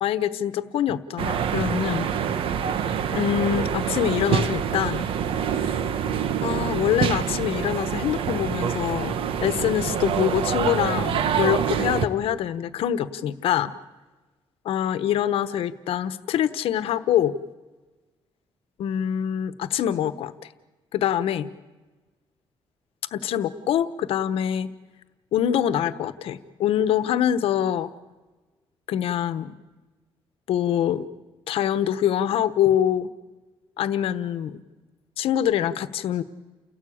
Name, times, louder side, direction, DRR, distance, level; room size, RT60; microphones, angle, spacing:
voice 1, 0.0-2.1 3.1-5.1 6.4-13.7 14.6-17.3 18.8-20.5 20.9-21.5 23.1-24.7 25.3-27.9 28.9-29.6 30.5-31.1 31.5-33.1 33.8-34.6 35.2-36.2, left 10 dB, 85° left, 13 dB, 1.2 m, -24 dB
sound 1, 1.2-12.1, right 8 dB, 75° right, 1.3 m, -26 dB
30.0 x 17.5 x 8.7 m, 1.2 s
cardioid pair, 125°, 9 cm